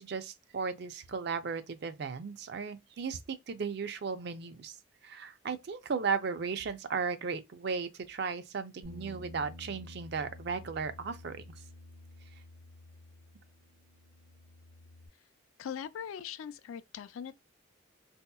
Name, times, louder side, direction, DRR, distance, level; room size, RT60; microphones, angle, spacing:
voice 1, 0.0-4.8 5.0-11.4, right 5 dB, 55° right, 0.4 m, -36 dB
Bass guitar, 8.8-15.1, left 1 dB, 75° right, 1.2 m, -51 dB
voice 2, 15.6-17.3, left 8 dB, 90° left, 0.3 m, -40 dB
3.9 x 2.8 x 2.2 m
head